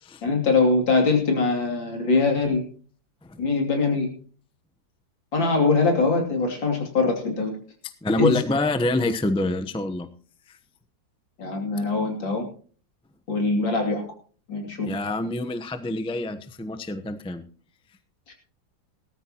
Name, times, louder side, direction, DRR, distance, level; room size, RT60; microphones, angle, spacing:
voice 1, 0.2-2.6 3.4-4.1 5.3-7.6 8.2-8.4 11.4-12.5 13.3-14.0 14.5-14.9 18.3-18.4, left 3 dB, 85° left, 2 dB, 3.7 m, -22 dB
voice 2, 8.0-10.1 14.8-17.4, left 1 dB, 10° left, 9 dB, 0.3 m, -26 dB
18.5 x 13.0 x 3.0 m, 0.42 s
omnidirectional pair, 2.0 m